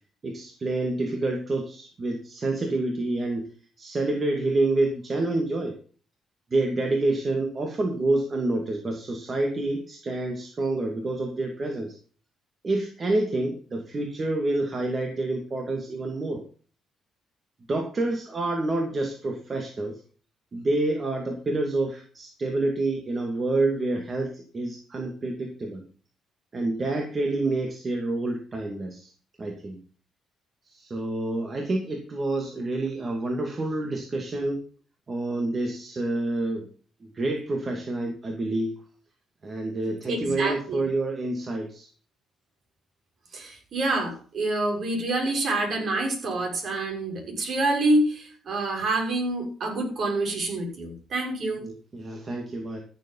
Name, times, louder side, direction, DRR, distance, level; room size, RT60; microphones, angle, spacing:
voice 1, 0.2-3.5 3.8-5.7 6.5-12.0 12.6-16.4 17.7-20.0 20.5-25.8 26.5-29.1 29.4-29.8 30.7-34.6 35.1-36.7 37.1-38.8 39.4-41.9 51.6-52.8, right 2 dB, 35° right, 2 dB, 2.5 m, -28 dB
voice 2, 40.1-40.8 43.3-51.7, right 2 dB, 55° right, 1 dB, 6.7 m, -27 dB
14.5 x 7.6 x 5.6 m, 0.41 s
cardioid pair, 90°, 0 cm